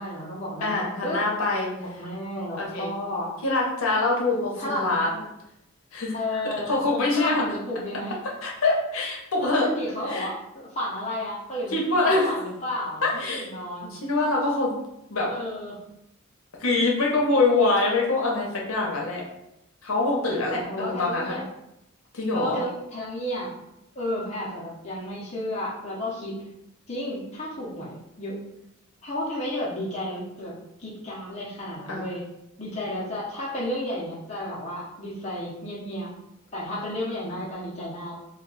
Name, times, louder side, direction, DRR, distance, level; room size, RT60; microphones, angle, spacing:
voice 1, 0.0-1.2 1.8-3.3 4.6-4.9 6.1-6.8 7.2-8.2 9.4-14.0 15.3-15.8 20.5-21.5 22.3-23.5 24.0-26.4 26.9-28.4 29.0-32.2 32.6-36.1 36.5-38.2, left 1 dB, 30° left, -6 dB, 0.6 m, -32 dB
voice 2, 0.6-1.7 2.6-2.9 3.4-5.1 5.9-6.1 6.7-7.4 8.4-9.7 10.1-10.3 11.7-12.3 13.0-13.4 13.9-14.7 15.1-15.3 16.6-19.2 19.8-21.3 22.1-22.6 31.9-32.1, left 2 dB, 75° left, -2 dB, 0.7 m, -24 dB
2.3 x 2.2 x 3.7 m, 0.83 s
head